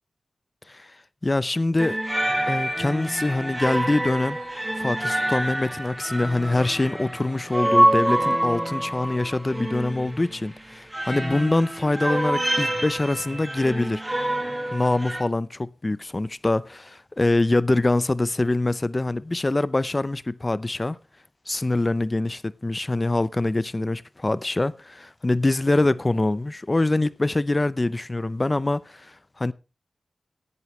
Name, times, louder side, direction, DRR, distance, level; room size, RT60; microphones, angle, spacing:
voice 1, 1.2-2.0 2.5-4.4 4.8-14.0 14.7-21.0 21.5-29.5, left 2 dB, 25° left, 0.5 m, -24 dB
sound 1, 1.8-15.2, right 1 dB, 15° right, 2.0 m, -26 dB
17.0 x 11.0 x 3.1 m
wide cardioid pair, 90°, 0 cm